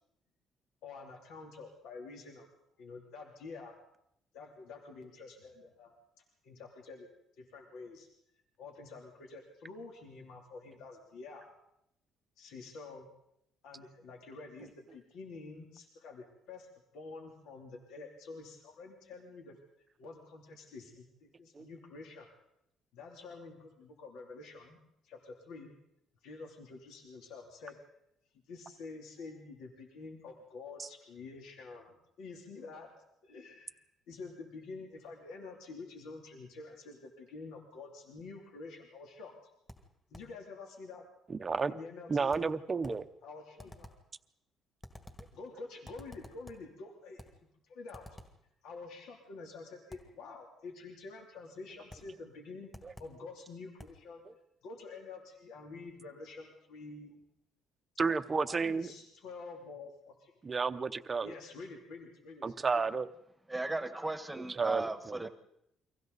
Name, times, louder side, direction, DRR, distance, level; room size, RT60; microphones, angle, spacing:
voice 1, 0.8-2.5 2.8-3.8 4.3-6.0 6.4-8.1 8.6-11.5 12.4-13.1 13.6-16.7 16.9-19.6 20.0-22.3 22.9-24.8 25.0-25.7 26.2-27.8 28.5-32.9 33.2-39.5 40.1-41.0 41.7-42.3 43.2-43.9 45.3-47.3 47.6-48.1 48.6-52.7 53.0-54.2 54.6-57.2 58.5-60.3 61.2-62.9, left 3 dB, 75° left, 1 dB, 3.1 m, -48 dB
sound 1, 39.7-40.4 42.3-43.1 43.6-44.1 44.8-45.5 45.8-46.7 47.2-47.4 47.9-48.4 49.9-50.2 51.9-52.2 52.7-53.2 53.8-54.1, left 1 dB, 15° left, 1.9 m, -52 dB
voice 2, 41.3-41.7 42.1-43.1 52.8-52.9 58.0-58.9 60.4-61.3 62.4-63.1 64.3-65.3, right 4 dB, 20° right, 8 dB, 0.7 m, -32 dB
voice 3, 63.5-65.3, right 2 dB, 5° right, 9 dB, 1.3 m, -36 dB
30.0 x 24.0 x 4.1 m, 0.78 s
cardioid pair, 170°, 0 cm